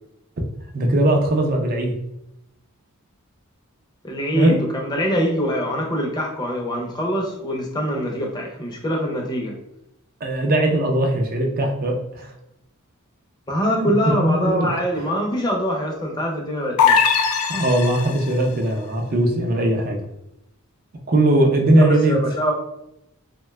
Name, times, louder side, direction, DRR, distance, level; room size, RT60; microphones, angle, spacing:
voice 1, 0.7-1.9 4.3-4.6 10.2-12.3 13.8-14.7 17.5-20.0 21.1-22.1, right 1 dB, 40° right, 2 dB, 0.4 m, -19 dB
voice 2, 4.0-9.6 13.5-17.0 21.8-22.5, equal, 20° left, -1 dB, 0.5 m, -24 dB
sound 1, 16.8-18.4, left 6 dB, 80° left, 0.4 m, -19 dB
2.6 x 2.2 x 3.2 m, 0.82 s
head